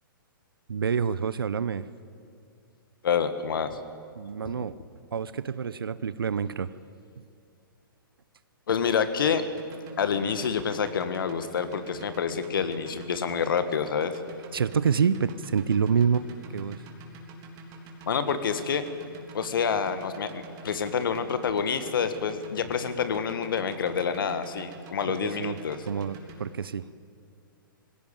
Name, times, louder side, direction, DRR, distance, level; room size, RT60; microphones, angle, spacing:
voice 1, 0.7-1.9 4.2-4.7 5.1-6.7 7.2-7.3 14.5-16.3 16.5-16.8 25.2-25.6 25.9-26.9, right 6 dB, 80° right, 15 dB, 0.7 m, -27 dB
voice 2, 3.0-3.8 4.5-4.6 8.7-9.4 10.0-14.1 18.1-18.8 19.3-25.8, left 6 dB, 70° left, 10 dB, 1.7 m, -27 dB
sound 1, 9.4-26.4, right 1 dB, 35° right, 3.5 m, -46 dB
19.5 x 16.5 x 9.0 m, 2.3 s
hypercardioid pair, 125°, 12 cm